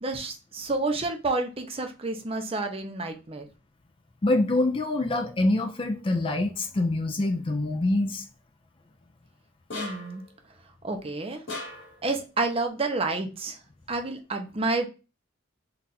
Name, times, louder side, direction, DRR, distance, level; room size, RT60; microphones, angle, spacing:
voice 1, 0.0-3.5 9.7-10.2 10.8-11.4 12.0-13.6 13.9-14.9, right 3 dB, 30° right, 0.6 m, -29 dB
voice 2, 4.2-8.2, left 2 dB, 25° left, 0.4 m, -25 dB
sound 1, 9.7-10.3 11.5-12.0, left 2 dB, 65° left, 2.0 m, -37 dB
3.9 x 2.4 x 4.1 m
head